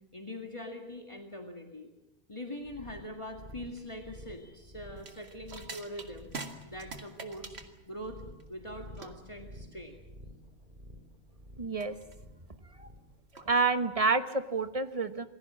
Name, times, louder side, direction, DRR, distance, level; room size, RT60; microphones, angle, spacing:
voice 1, 0.1-1.9 2.3-6.3 6.6-7.6 7.9-8.2 8.5-10.0, left 1 dB, 30° left, 2 dB, 2.1 m, -43 dB
sound 1, 2.6-13.2, equal, 55° right, 5.5 m, -51 dB
sound 2, 5.0-14.0, right 3 dB, 80° right, 2.1 m, -47 dB
voice 2, 11.6-12.0 12.8-12.9 13.4-15.3, right 4 dB, 35° right, 9 dB, 1.3 m, -28 dB
27.5 x 20.0 x 7.5 m, 0.93 s
omnidirectional pair, 1.1 m